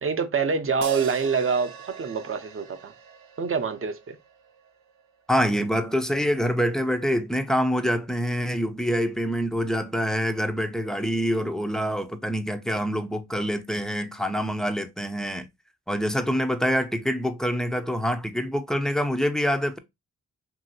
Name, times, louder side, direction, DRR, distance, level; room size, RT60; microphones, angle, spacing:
voice 1, 0.0-2.9 3.4-4.2, right 5 dB, 40° right, 0.7 m, -26 dB
sound 1, 0.8-5.1, right 7 dB, 85° right, 0.6 m, -41 dB
voice 2, 5.3-15.5 15.9-19.8, equal, ahead, 0.5 m, -26 dB
2.8 x 2.8 x 2.7 m
supercardioid pair, 50°, 35 cm